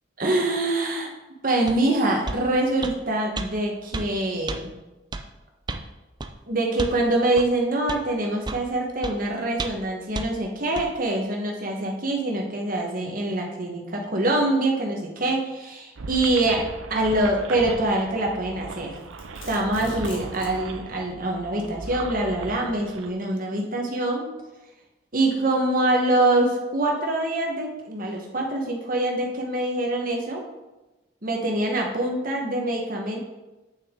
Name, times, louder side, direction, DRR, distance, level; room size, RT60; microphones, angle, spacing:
voice 1, 0.2-1.1 1.4-4.7 6.5-16.6 16.9-18.9 19.5-24.3 25.1-30.4 31.2-33.2, right 1 dB, 45° right, 0 dB, 1.3 m, -24 dB
sound 1, 1.7-1.8 2.3-2.4 2.8-3.0 3.4-3.5 3.9-4.1 4.5-4.6 5.1-5.3 5.7-5.9 6.2-6.3 6.8-7.0 7.4-7.5 7.9-8.0 8.4-8.7 9.0-9.2 9.6-9.9 10.1-10.3 10.8-10.9, right 3 dB, 20° right, 0.4 m, -31 dB
sound 2, 16.0-23.1, right 3 dB, 80° right, 0.6 m, -38 dB
Domestic sounds home sounds, 18.7-20.6, left 3 dB, 80° left, 1.8 m, -44 dB
8.5 x 6.5 x 3.8 m, 1.1 s
head